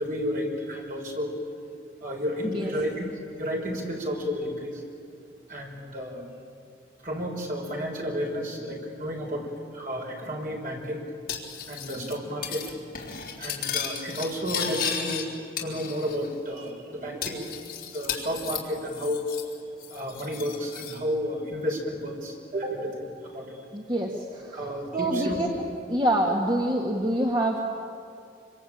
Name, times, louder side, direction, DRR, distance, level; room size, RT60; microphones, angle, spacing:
voice 1, 0.0-1.4 2.0-3.1 3.4-4.8 5.5-6.2 7.0-11.0 11.7-12.7 13.4-17.5 17.9-19.3 19.9-23.6 24.5-25.4, equal, 50° right, 0 dB, 5.5 m, -32 dB
Cutlery silverware, 11.3-12.1 12.4-12.7 13.0-15.2 15.6-16.3 16.6-16.7 17.2-19.5 19.8-21.0, left 8 dB, 55° left, 3.6 m, -34 dB
voice 2, 23.7-24.7 24.9-25.6 25.9-27.6, right 1 dB, 25° right, -1 dB, 2.0 m, -26 dB
25.5 x 25.5 x 8.8 m, 2.4 s
head